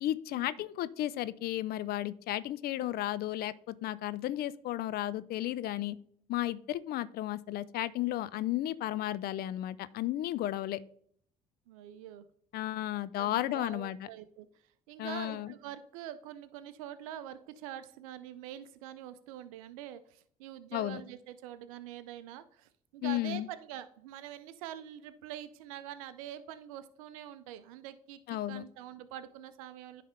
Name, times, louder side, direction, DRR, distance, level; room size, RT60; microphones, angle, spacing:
voice 1, 0.0-6.0 6.3-10.8 12.5-14.0 15.0-15.5 20.7-21.0 23.0-23.5 28.3-28.6, left 14 dB, 60° left, 17 dB, 0.5 m, -33 dB
voice 2, 11.7-12.3 13.2-14.5 14.9-30.0, right 11 dB, 85° right, 12 dB, 0.5 m, -45 dB
9.9 x 3.3 x 5.6 m, 0.63 s
hypercardioid pair, 60°, 17 cm